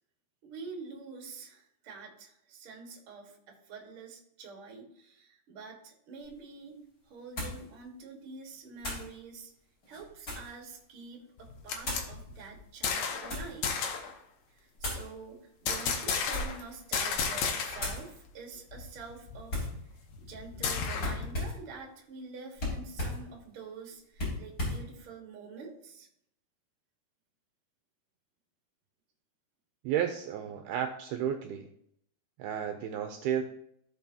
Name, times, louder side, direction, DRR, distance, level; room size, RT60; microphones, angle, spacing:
voice 1, 0.4-6.8 7.0-9.5 9.9-13.9 14.5-19.7 20.2-26.1, right 4 dB, 50° right, 1 dB, 1.7 m, -47 dB
sound 1, 6.2-6.3 7.4-7.6 8.8-9.1 9.8-10.6 11.8-12.1 12.9-13.6 14.8-15.1 16.2-16.7 17.1-17.3 17.8-18.1 19.5-19.8 21.0-21.7 22.6-23.2 24.1-24.8, left 1 dB, 25° left, 3.9 m, -36 dB
sound 2, 11.4-13.3 13.6-14.1 15.7-16.6 16.9-18.0 18.3-18.4 18.7-21.3, left 6 dB, 75° left, 1.7 m, -33 dB
voice 2, 29.8-31.7 32.4-33.4, right 9 dB, 80° right, 6 dB, 2.3 m, -32 dB
15.5 x 5.3 x 2.8 m, 0.72 s
omnidirectional pair, 4.7 m